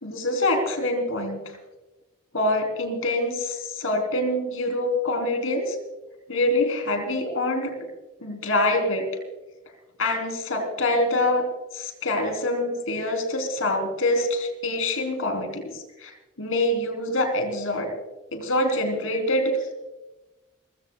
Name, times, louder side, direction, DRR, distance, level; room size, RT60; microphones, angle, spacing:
voice 1, 0.0-1.4 2.3-5.8 6.3-7.7 8.2-9.1 10.0-11.4 11.7-16.1 16.4-17.9 18.3-19.6, left 1 dB, 80° left, 5 dB, 3.6 m, -25 dB
29.5 x 16.0 x 2.3 m, 1.1 s
head